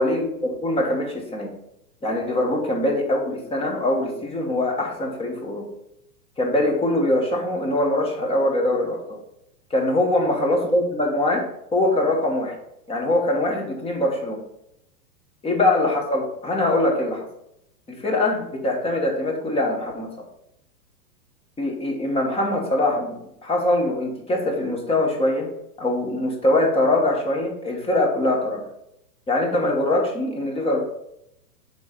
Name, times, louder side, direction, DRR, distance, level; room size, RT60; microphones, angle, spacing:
voice 1, 0.0-1.5 2.0-5.6 6.4-9.2 9.7-11.4 11.7-12.5 12.9-14.4 15.4-17.3 17.9-20.1 21.6-25.5 25.8-28.7 29.3-30.8, left 1 dB, 10° left, 1 dB, 1.3 m, -23 dB
8.7 x 3.5 x 5.0 m, 0.81 s
hypercardioid pair, 135°, 48 cm